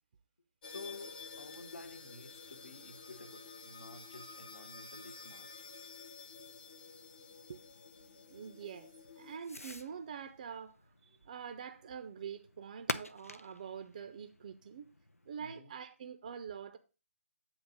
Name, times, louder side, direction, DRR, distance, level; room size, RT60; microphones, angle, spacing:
voice 1, 0.6-5.5 15.4-15.8, left 3 dB, 65° left, 1.1 m, -51 dB
sound 1, 0.6-9.4, left 5 dB, 35° left, 0.8 m, -51 dB
Fireworks, 0.8-15.4, left 2 dB, 85° left, 0.6 m, -50 dB
voice 2, 8.3-14.9 15.3-16.8, right 7 dB, 30° right, 0.5 m, -45 dB
8.9 x 3.0 x 6.3 m
figure-of-eight pair, 145°, 8 cm